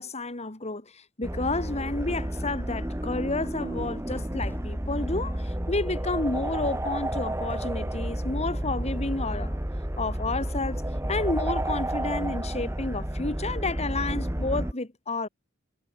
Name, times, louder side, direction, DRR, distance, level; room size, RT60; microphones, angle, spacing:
voice 1, 0.0-9.6 10.0-10.8 11.1-15.3, left 2 dB, 30° left, 2.1 m, -31 dB
sound 1, 1.2-14.7, right 1 dB, 15° right, 1.7 m, -31 dB
sound 2, 3.8-4.8 6.6-7.8, equal, 10° left, 2.8 m, -37 dB
head